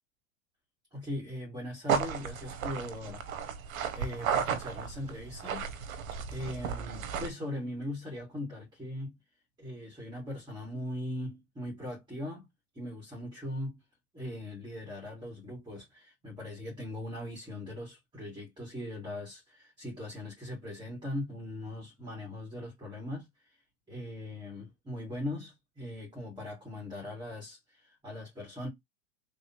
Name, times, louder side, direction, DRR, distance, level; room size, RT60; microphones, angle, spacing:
voice 1, 0.9-3.2 3.9-5.7 6.3-9.2 9.6-12.5 12.7-13.8 14.1-23.6 23.9-28.7, left 1 dB, 10° right, 2.1 m, -40 dB
sound 1, 1.9-7.3, right 7 dB, 75° right, 1.0 m, -34 dB
3.5 x 2.8 x 2.9 m
hypercardioid pair, 115°, 42 cm